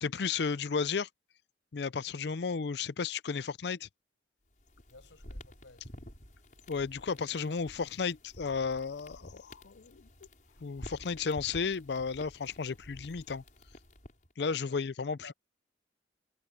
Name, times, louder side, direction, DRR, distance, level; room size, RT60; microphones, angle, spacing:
voice 1, 0.0-1.1 1.7-3.9 6.7-10.1 10.6-13.4 14.4-15.3, left 5 dB, 65° left, 0.5 m, -33 dB
sound 1, 4.5-14.3, left 1 dB, 45° left, 5.9 m, -51 dB
voice 2, 4.9-5.9 14.4-14.8 15.2-15.3, left 3 dB, 90° left, 5.8 m, -55 dB
head